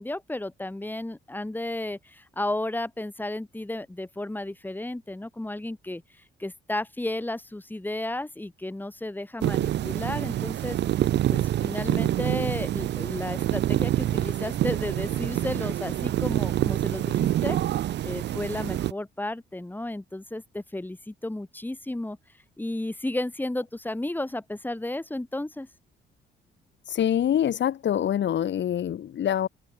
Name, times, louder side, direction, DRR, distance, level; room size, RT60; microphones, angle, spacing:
voice 1, 0.0-6.0 6.4-10.8 11.3-17.6 18.0-22.2 22.6-25.7, left 1 dB, 10° left, 3.5 m, -33 dB
sound 1, 9.4-18.9, right 12 dB, 60° right, 0.6 m, -26 dB
voice 2, 26.9-29.5, left 10 dB, 65° left, 3.9 m, -25 dB
open air
cardioid pair, 90°, 20 cm